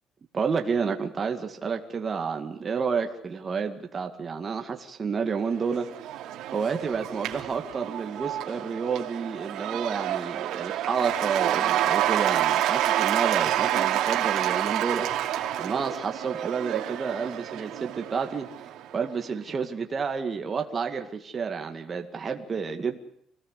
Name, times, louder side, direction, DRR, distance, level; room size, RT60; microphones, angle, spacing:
voice 1, 0.3-5.9 6.5-18.5 18.9-23.0, right 5 dB, 25° right, 4 dB, 2.1 m, -30 dB
Cheering / Applause / Crowd, 5.5-19.0, right 12 dB, 75° right, 2.7 m, -28 dB
25.5 x 18.5 x 8.3 m, 0.69 s
cardioid pair, 170°, 0 cm